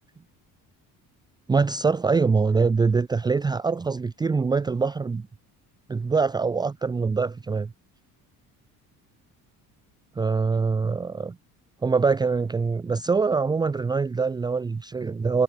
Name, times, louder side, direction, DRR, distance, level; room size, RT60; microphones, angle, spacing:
voice 1, 1.5-5.3 5.9-7.7 10.2-11.4 11.8-15.4, right 4 dB, 10° right, 0.7 m, -24 dB
cardioid pair, 175°, 34 cm